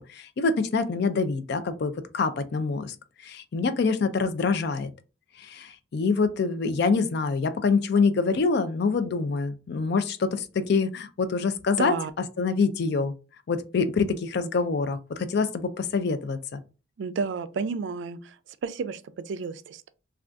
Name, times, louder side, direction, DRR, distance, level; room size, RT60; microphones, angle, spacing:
voice 1, 0.1-2.9 3.2-4.9 5.4-11.9 12.4-13.1 13.5-16.6, left 4 dB, 55° left, 0.4 m, -25 dB
voice 2, 11.8-12.1 17.0-18.4 18.6-19.9, right 5 dB, 60° right, 0.3 m, -31 dB
2.5 x 2.3 x 3.4 m
head